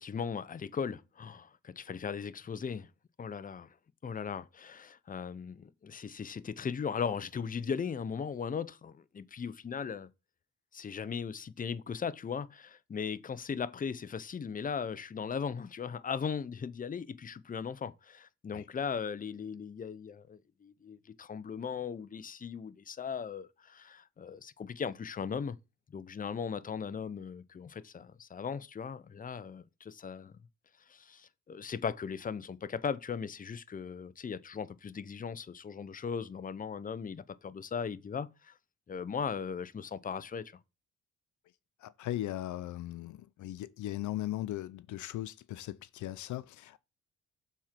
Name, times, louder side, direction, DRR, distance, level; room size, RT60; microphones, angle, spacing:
voice 1, 0.0-2.9 3.2-3.7 4.0-10.1 10.7-25.6 25.9-30.4 30.9-38.5 38.9-40.5, left 6 dB, 30° left, 0.7 m, -38 dB
voice 2, 41.8-46.8, left 14 dB, 75° left, 0.6 m, -38 dB
7.2 x 4.4 x 5.8 m
cardioid pair, 90°, 30 cm